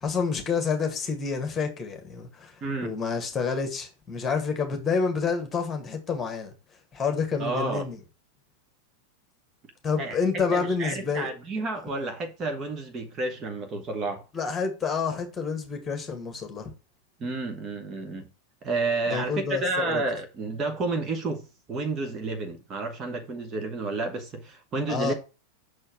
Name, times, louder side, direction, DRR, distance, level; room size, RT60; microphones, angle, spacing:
voice 1, 0.0-2.5 2.8-6.5 6.9-8.0 9.8-11.3 14.3-16.7 19.1-20.0 24.9-25.1, left 5 dB, 20° left, 1.8 m, -28 dB
voice 2, 2.6-2.9 7.4-7.9 10.0-10.2 10.5-14.2 17.2-18.3 18.6-25.1, right 3 dB, 25° right, 1.2 m, -30 dB
6.4 x 4.4 x 5.9 m
figure-of-eight pair, 90°, 0 cm